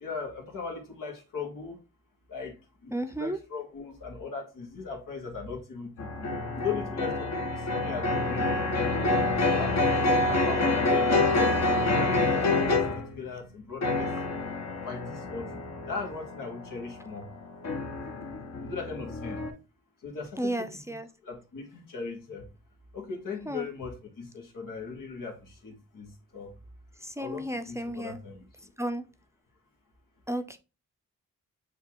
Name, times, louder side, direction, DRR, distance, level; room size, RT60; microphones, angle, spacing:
voice 1, 0.0-1.8 2.3-2.5 2.8-6.3 6.6-8.5 8.9-9.2 9.5-12.8 13.1-14.1 14.8-15.4 15.9-17.2 18.6-19.4 20.0-20.7 21.2-22.4 22.9-25.4 25.6-26.1 26.3-26.5 27.2-28.4, left 5 dB, 85° left, 0 dB, 1.2 m, -38 dB
voice 2, 2.9-3.4 15.4-15.6 20.4-21.1 23.5-23.7 27.0-28.2 28.8-29.0 30.3-30.6, right 1 dB, 10° right, 8 dB, 0.5 m, -33 dB
sound 1, 6.0-13.2 13.8-19.5, left 2 dB, 55° left, 0.9 m, -27 dB
6.6 x 2.4 x 2.9 m, 0.30 s
cardioid pair, 55°, 32 cm